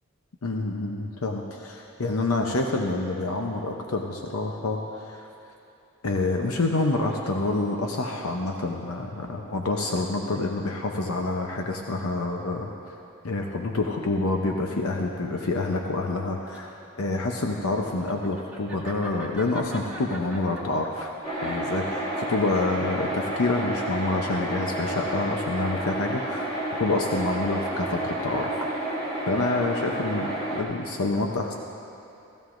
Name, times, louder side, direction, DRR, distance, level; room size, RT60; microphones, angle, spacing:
voice 1, 0.4-5.3 6.0-12.7 13.2-16.7 17.0-21.1 21.4-26.4 26.8-28.7 29.3-31.5, left 2 dB, 80° left, 2 dB, 0.8 m, -27 dB
Laughter, 16.5-25.5, right 2 dB, 5° right, 1.3 m, -44 dB
sound 1, 21.2-30.6, right 1 dB, 25° left, 1.8 m, -30 dB
16.0 x 14.5 x 2.6 m, 2.9 s
head